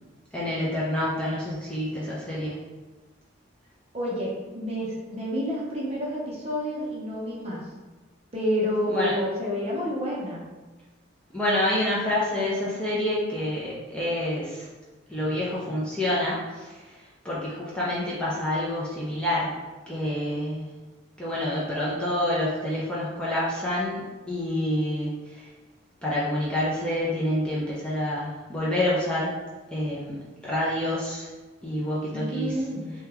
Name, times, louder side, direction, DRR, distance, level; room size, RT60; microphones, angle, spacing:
voice 1, 0.3-2.5 8.9-9.1 11.3-14.7 15.1-16.4 17.2-19.5 19.9-20.7 21.2-25.1 26.0-29.3 29.7-30.1 30.4-31.3 31.6-32.5, left 1 dB, 5° left, -9 dB, 0.5 m, -27 dB
voice 2, 3.9-7.7 8.3-10.5 17.7-18.2 32.1-32.9, equal, 30° right, -5 dB, 0.7 m, -29 dB
2.9 x 2.2 x 3.4 m, 1.2 s
head